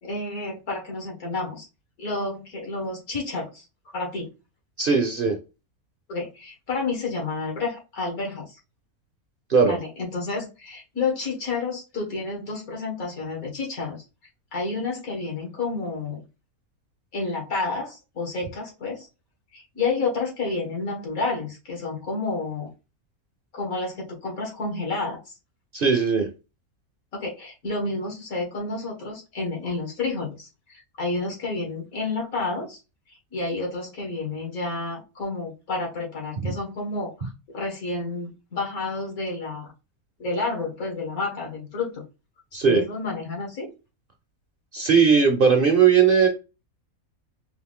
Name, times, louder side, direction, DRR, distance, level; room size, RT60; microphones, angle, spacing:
voice 1, 0.0-1.7 2.0-4.3 6.1-8.6 9.6-14.0 14.5-16.2 17.1-19.1 19.5-22.7 23.5-25.3 27.1-32.8 33.3-39.7 40.2-42.0 42.6-43.7, left 3 dB, 75° left, 2.3 m, -30 dB
voice 2, 4.8-5.4 9.5-9.8 25.7-26.3 42.5-42.8 44.7-46.3, right 6 dB, 45° right, 0.8 m, -18 dB
4.7 x 2.6 x 3.6 m
omnidirectional pair, 1.5 m